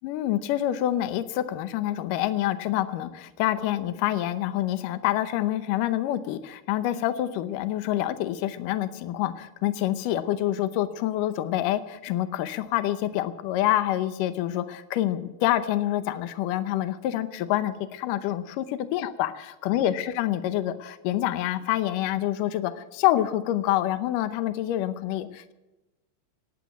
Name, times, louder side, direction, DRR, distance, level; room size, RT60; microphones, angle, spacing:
voice 1, 0.0-25.5, left 13 dB, 85° left, 11 dB, 1.9 m, -27 dB
18.5 x 9.3 x 8.2 m, 1.0 s
omnidirectional pair, 4.9 m